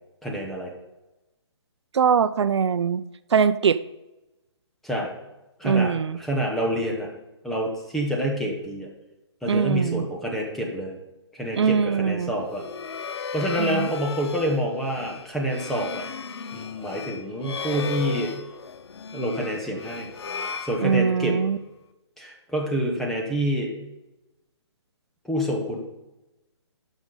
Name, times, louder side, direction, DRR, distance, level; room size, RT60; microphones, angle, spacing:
voice 1, 0.2-0.7 4.8-5.1 5.6-7.1 7.4-8.9 9.4-11.0 11.3-12.6 13.3-16.1 16.5-18.3 19.1-20.1 20.6-21.4 22.2-23.8 25.3-25.8, equal, ahead, -1 dB, 0.8 m, -27 dB
voice 2, 1.9-3.0 3.3-3.8 5.6-6.2 9.5-10.1 11.5-12.3 13.6-13.9 20.8-21.6, right 6 dB, 70° right, 14 dB, 0.5 m, -22 dB
sound 1, 12.4-21.4, left 6 dB, 65° left, 0.6 m, -35 dB
12.0 x 6.2 x 3.8 m, 0.99 s
hypercardioid pair, 165°, 15 cm